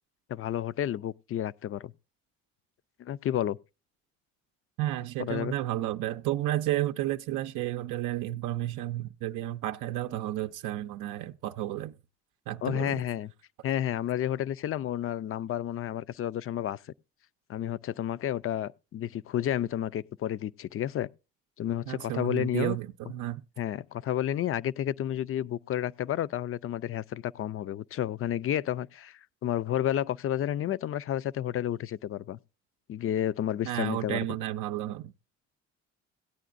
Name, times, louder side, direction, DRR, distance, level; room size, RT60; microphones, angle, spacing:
voice 1, 0.3-1.9 3.0-3.6 5.2-5.5 12.6-13.3 13.6-16.8 17.5-21.1 21.6-22.8 23.6-32.4 32.9-34.2, left 11 dB, 50° left, 0.4 m, -31 dB
voice 2, 4.8-11.9 12.5-13.0 21.9-23.4 33.6-35.1, right 14 dB, 90° right, 0.5 m, -32 dB
17.0 x 9.2 x 2.5 m
cardioid pair, 90°, 30 cm